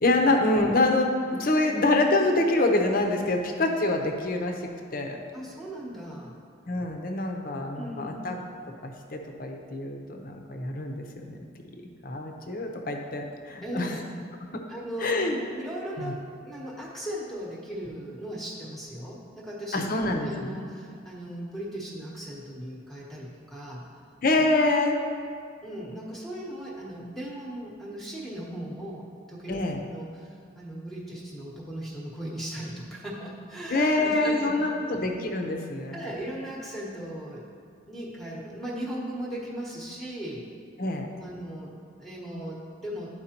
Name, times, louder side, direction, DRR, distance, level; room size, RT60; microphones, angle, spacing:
voice 1, 0.0-5.2 6.7-8.4 8.8-11.4 11.7-14.0 14.5-14.6 15.0-15.4 16.0-16.1 19.7-20.6 24.2-25.0 29.5-29.8 33.7-36.1 40.8-41.1, left 2 dB, 45° left, 3 dB, 0.7 m, -26 dB
voice 2, 5.3-6.3 7.8-8.2 13.6-14.1 14.7-15.2 15.5-23.8 25.6-29.6 29.9-35.0 35.9-37.5 37.9-40.4 41.2-43.1, equal, ahead, -5 dB, 0.9 m, -38 dB
12.0 x 4.7 x 2.9 m, 2.3 s
head